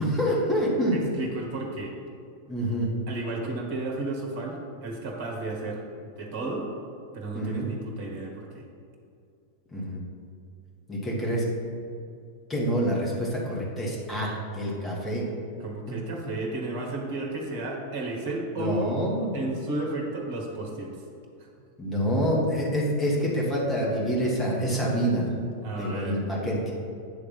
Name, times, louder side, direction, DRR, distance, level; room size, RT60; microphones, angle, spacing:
voice 1, 0.0-1.0 2.5-2.9 7.3-7.7 9.7-10.0 10.9-11.5 12.5-15.2 15.9-16.0 16.2-16.3 18.5-19.4 21.8-25.3 25.8-26.7, equal, 15° left, -4 dB, 1.7 m, -27 dB
voice 2, 0.9-1.9 3.1-6.7 7.1-8.6 15.6-19.0 19.3-20.9 21.4-21.5 25.6-26.2, right 2 dB, 50° right, 0 dB, 1.4 m, -33 dB
8.0 x 3.3 x 5.7 m, 2.5 s
figure-of-eight pair, 90°, 0 cm